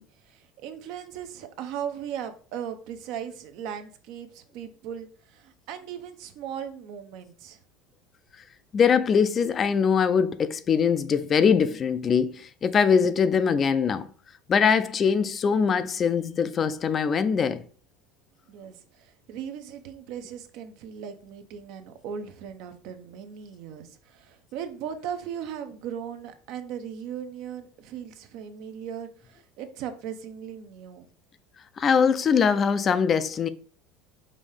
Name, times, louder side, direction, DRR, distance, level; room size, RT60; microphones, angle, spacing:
voice 1, 0.0-7.6 18.5-31.1, right 8 dB, 65° right, 0.7 m, -38 dB
voice 2, 8.7-14.1 14.5-17.6 31.8-33.5, left 6 dB, 30° left, 0.3 m, -22 dB
5.2 x 2.7 x 3.3 m
supercardioid pair, 125°, 0 cm